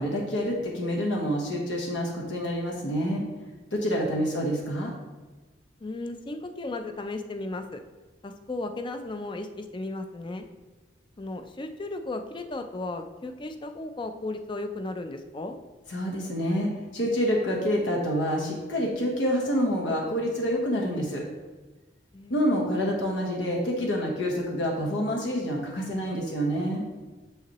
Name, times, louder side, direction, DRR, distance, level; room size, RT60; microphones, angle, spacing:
voice 1, 0.0-3.2 3.7-4.9 15.9-21.2 22.3-26.8, equal, 85° left, -2 dB, 1.1 m, -27 dB
voice 2, 5.8-7.8 8.2-10.5 11.2-15.6 22.1-22.5, left 2 dB, 25° left, 7 dB, 0.4 m, -35 dB
6.7 x 5.6 x 3.0 m, 1.2 s
head